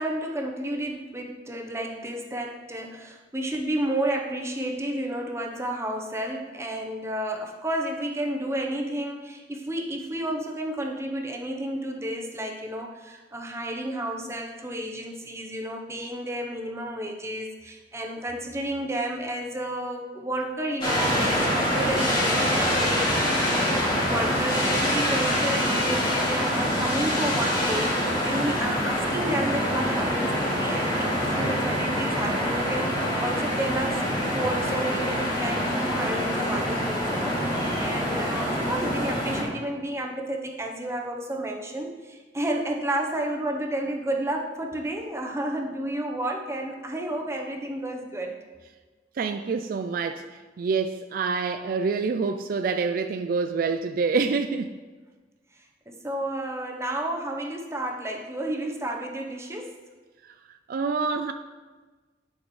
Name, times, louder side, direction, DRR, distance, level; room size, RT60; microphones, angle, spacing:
voice 1, 0.0-48.4 55.9-59.8, right 1 dB, 15° right, 2 dB, 0.8 m, -31 dB
sound 1, 20.8-39.4, equal, 25° left, 2.5 m, -25 dB
voice 2, 49.2-54.7 60.7-61.3, right 4 dB, 55° right, 8 dB, 0.3 m, -27 dB
11.5 x 6.4 x 3.2 m, 1.3 s
head